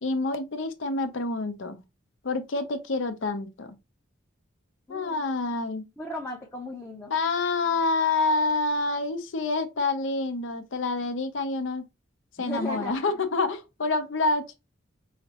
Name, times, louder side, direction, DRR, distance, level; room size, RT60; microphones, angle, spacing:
voice 1, 0.0-1.8 2.2-3.8 4.9-5.9 7.1-11.9 12.4-14.5, left 3 dB, 75° left, 0.7 m, -27 dB
voice 2, 4.9-5.2 6.0-7.1 12.4-13.1, left 1 dB, 15° left, 0.6 m, -36 dB
4.9 x 2.0 x 2.8 m
head